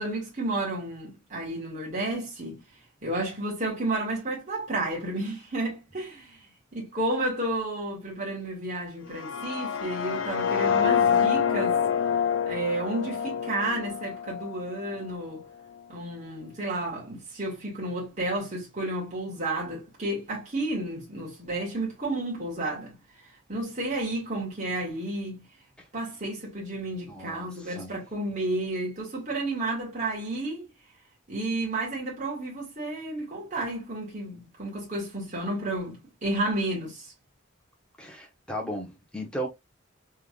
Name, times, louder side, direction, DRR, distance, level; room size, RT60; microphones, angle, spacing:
voice 1, 0.0-2.6 3.0-6.4 6.7-11.8 12.5-15.4 15.9-22.9 23.5-25.4 25.9-30.7 31.3-37.1, right 2 dB, 40° right, 1.8 m, -31 dB
sound 1, 9.1-15.0, left 7 dB, 70° left, 0.5 m, -27 dB
voice 2, 27.1-27.9 38.0-39.5, equal, 5° left, 1.2 m, -36 dB
3.7 x 3.5 x 2.4 m
head